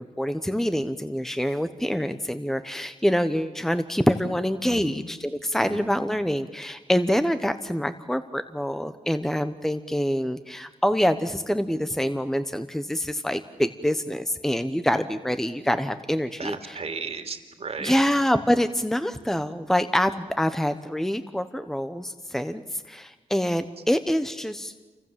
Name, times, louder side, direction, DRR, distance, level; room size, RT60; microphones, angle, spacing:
voice 1, 0.0-16.8 17.8-24.7, equal, 5° left, 10 dB, 1.1 m, -26 dB
voice 2, 4.7-5.0 5.7-5.8 16.4-18.1, right 5 dB, 55° right, 6 dB, 2.7 m, -35 dB
28.5 x 25.0 x 7.7 m, 1.2 s
cardioid pair, 75°, 13 cm